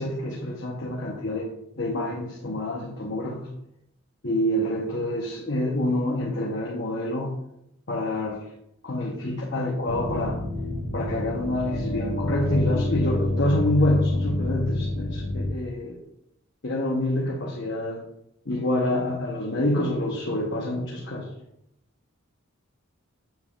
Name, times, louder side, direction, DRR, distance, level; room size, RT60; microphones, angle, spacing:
voice 1, 0.0-1.5 1.8-3.5 4.2-7.3 7.9-8.4 8.8-10.4 10.9-16.0 16.6-18.0 18.5-21.3, left 1 dB, 55° left, -3 dB, 1.0 m, -27 dB
sound 1, 9.9-15.5, left 1 dB, 75° left, 1.4 m, -28 dB
7.5 x 7.3 x 2.4 m, 0.79 s
head